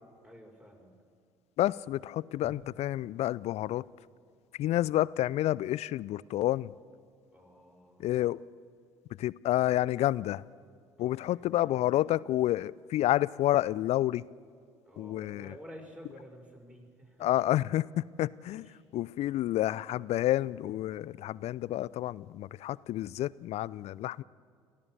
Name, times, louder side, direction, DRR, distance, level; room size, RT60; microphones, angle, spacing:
voice 1, 0.2-0.9 7.3-8.1 11.0-12.2 14.8-17.3 18.5-18.8, equal, 10° right, 1 dB, 5.8 m, -51 dB
voice 2, 1.6-3.8 4.6-6.7 8.0-8.4 9.2-10.4 11.0-14.2 15.0-15.5 17.2-18.7 18.9-24.2, left 14 dB, 50° left, 21 dB, 0.4 m, -29 dB
Drum, 2.4-5.4, left 2 dB, 30° left, 2.7 m, -57 dB
29.5 x 14.0 x 6.7 m, 2.3 s
figure-of-eight pair, 55°, 14 cm